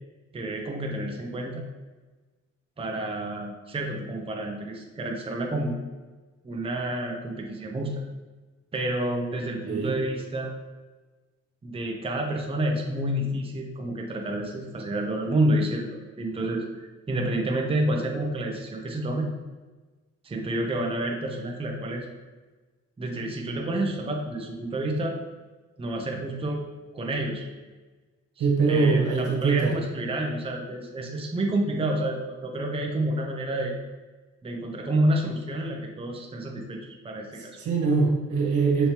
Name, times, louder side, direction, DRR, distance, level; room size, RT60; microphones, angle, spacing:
voice 1, 0.3-1.6 2.8-5.7 6.4-8.0 8.7-10.6 11.6-19.3 20.2-22.1 23.0-25.2 25.8-26.6 26.9-27.5 28.4-33.7 34.4-37.6, right 1 dB, 20° right, 0 dB, 0.7 m, -29 dB
voice 2, 9.6-9.9 28.4-29.8 37.6-38.9, right 4 dB, 80° right, -1 dB, 1.2 m, -23 dB
5.7 x 3.2 x 2.9 m, 1.2 s
cardioid pair, 90°, 30 cm